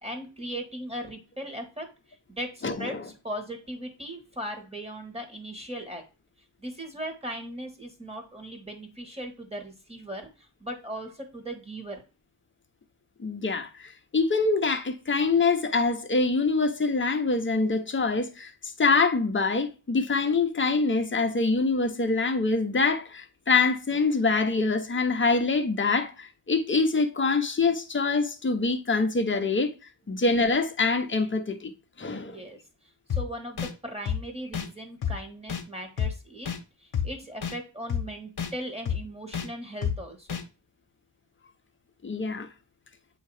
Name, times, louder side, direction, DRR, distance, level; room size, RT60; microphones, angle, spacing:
voice 1, 0.0-1.9 2.3-6.0 6.6-12.0 30.1-30.2 32.3-32.6 33.1-36.5 36.8-40.4, right 1 dB, 10° right, 1.5 m, -38 dB
voice 2, 2.6-3.0 13.2-29.7 30.1-31.7 32.0-32.4 42.0-42.5, left 3 dB, 25° left, 0.7 m, -25 dB
sound 1, 33.1-33.2 33.6-33.7 34.1-34.2 34.5-34.7 35.0-35.1 35.5-35.6 36.0-36.1 36.5-36.6 36.9-37.1 37.4-37.5 37.9-38.0 38.4-38.5 38.9-39.0 39.3-39.5 39.8-39.9 40.3-40.4, left 8 dB, 50° left, 1.1 m, -28 dB
8.1 x 2.8 x 4.7 m
wide cardioid pair, 150°, 50 cm